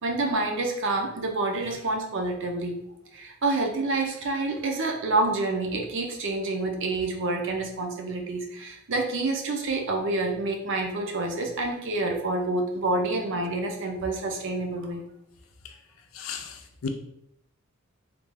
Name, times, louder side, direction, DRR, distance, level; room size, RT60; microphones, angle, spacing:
voice 1, 0.0-2.8 3.1-15.0, right 2 dB, 65° right, 3 dB, 0.6 m, -28 dB
voice 2, 16.1-16.9, left 6 dB, 75° left, 5 dB, 0.5 m, -35 dB
3.3 x 2.4 x 3.3 m, 0.77 s
head